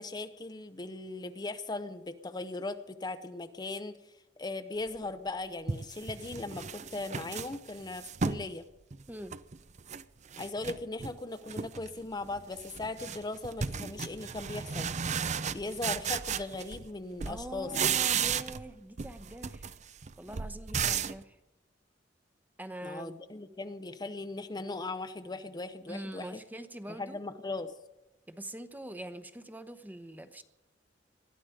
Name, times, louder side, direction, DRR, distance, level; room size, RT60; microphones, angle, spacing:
voice 1, 0.0-8.7 10.4-14.9 15.5-17.7 22.8-26.4 26.9-27.7, left 2 dB, 25° left, 9 dB, 0.7 m, -38 dB
sound 1, 5.0-5.1 5.7-8.5 8.9-10.0 10.3-11.2 11.5-11.9 12.2-16.9 17.2-18.7 19.0-21.2, right 6 dB, 40° right, 0.6 m, -34 dB
voice 2, 17.2-19.7 20.2-21.4 22.6-23.2 25.9-27.2 28.3-30.4, right 1 dB, 10° right, 11 dB, 0.9 m, -43 dB
20.5 x 13.0 x 5.0 m, 1.0 s
head